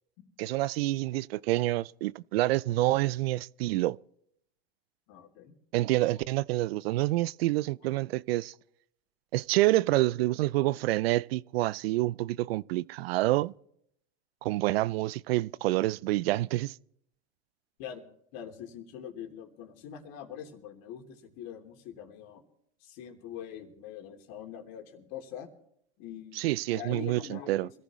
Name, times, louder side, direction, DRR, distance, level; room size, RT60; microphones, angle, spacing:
voice 1, 0.4-4.0 5.7-8.5 9.3-13.5 14.4-16.7 26.4-27.7, right 17 dB, 80° right, 0.5 m, -27 dB
voice 2, 5.1-5.5 17.8-18.0 18.3-22.4 22.8-25.5 26.0-27.7, left 9 dB, 60° left, 3.1 m, -43 dB
25.0 x 14.5 x 3.1 m
hypercardioid pair, 105°, 30 cm